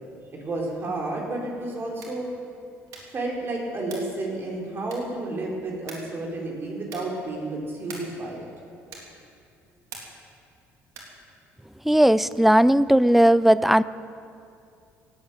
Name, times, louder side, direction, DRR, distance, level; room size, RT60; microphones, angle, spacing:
voice 1, 0.3-2.3 3.1-8.5, right 2 dB, 40° right, -2 dB, 4.3 m, -31 dB
sound 1, 1.9-2.3 2.9-3.2 3.8-4.2 4.9-5.3 5.9-6.2 6.8-7.2 7.8-8.2 8.9-9.2 9.9-10.3 10.9-11.2, right 4 dB, 70° right, 3.7 m, -43 dB
voice 2, 11.9-13.8, right 1 dB, 5° right, 17 dB, 0.5 m, -17 dB
16.5 x 8.8 x 9.3 m, 2.5 s
supercardioid pair, 75°, 6 cm